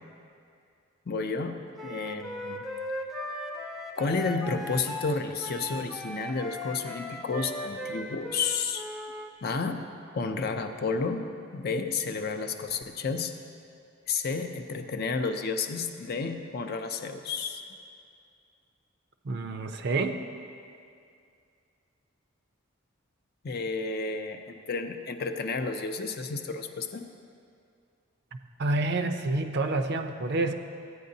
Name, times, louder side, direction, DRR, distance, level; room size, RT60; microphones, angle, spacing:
voice 1, 1.1-2.6 4.0-8.9 9.4-9.9 10.1-11.3 11.5-13.3 14.1-17.6 23.4-27.1, left 4 dB, 45° left, 6 dB, 0.5 m, -31 dB
Wind instrument woodwind instrument, 1.8-9.3, left 1 dB, ahead, 0.5 m, -38 dB
voice 2, 19.2-20.2 28.6-30.5, right 2 dB, 50° right, 7 dB, 0.5 m, -28 dB
14.5 x 9.3 x 2.7 m, 2.4 s
head